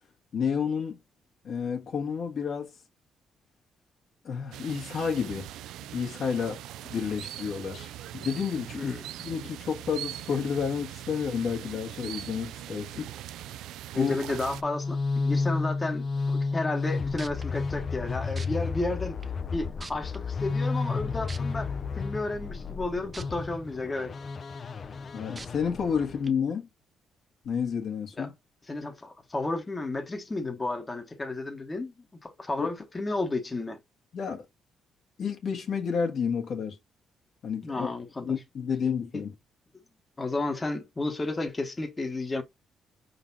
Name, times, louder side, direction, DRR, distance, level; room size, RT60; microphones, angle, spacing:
voice 1, 0.3-1.0 1.4-2.7 4.2-5.5 5.9-6.6 6.8-8.9 9.2-13.1 13.9-14.2 25.1-26.7 27.4-28.3 32.6-32.7 34.1-34.4 35.2-36.8 37.4-37.9 38.2-39.3, left 6 dB, 65° left, 1.5 m, -30 dB
sound 1, 4.5-14.6, right 12 dB, 90° right, 0.3 m, -41 dB
voice 2, 8.7-9.1 12.9-13.0 13.9-19.2 19.5-24.1 28.2-28.3 28.7-31.9 32.2-33.8 37.6-38.3 39.1-39.2 40.2-42.4, left 2 dB, 25° left, 1.1 m, -32 dB
sound 2, 14.4-26.3, left 4 dB, 45° left, 0.5 m, -32 dB
sound 3, 16.8-16.9 17.2-17.4 18.4-18.5 19.2-19.3 19.8-20.2 21.3-21.4 23.1-23.2 23.8-23.9 25.4-25.5 26.2-26.3, right 3 dB, 30° right, 0.7 m, -41 dB
4.9 x 3.9 x 2.7 m
cardioid pair, 90°, 0 cm